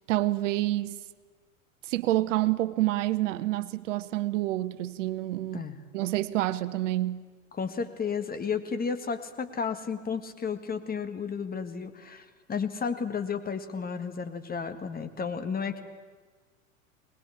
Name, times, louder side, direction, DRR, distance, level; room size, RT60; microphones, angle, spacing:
voice 1, 0.1-1.0 1.8-5.7 5.9-7.2, right 15 dB, 65° right, 1.0 m, -28 dB
voice 2, 7.5-15.8, left 6 dB, 20° left, 1.9 m, -33 dB
21.0 x 20.0 x 8.6 m
hypercardioid pair, 85°, 40 cm